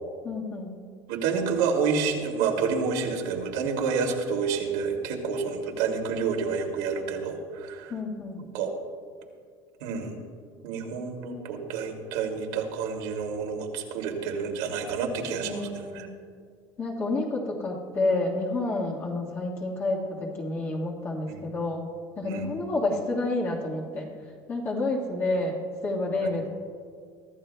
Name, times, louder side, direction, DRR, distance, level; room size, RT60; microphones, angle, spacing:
voice 1, 0.2-0.7 7.9-8.4 15.4-16.1 16.8-21.8 22.2-24.1 24.5-26.5, left 2 dB, 25° left, -2 dB, 1.5 m, -29 dB
voice 2, 1.1-7.9 8.4-8.7 9.8-10.2 10.6-16.1 21.3-21.4 22.2-22.5, right 5 dB, 80° right, 2 dB, 2.4 m, -29 dB
24.0 x 14.0 x 2.2 m, 2.2 s
cardioid pair, 165°, 9 cm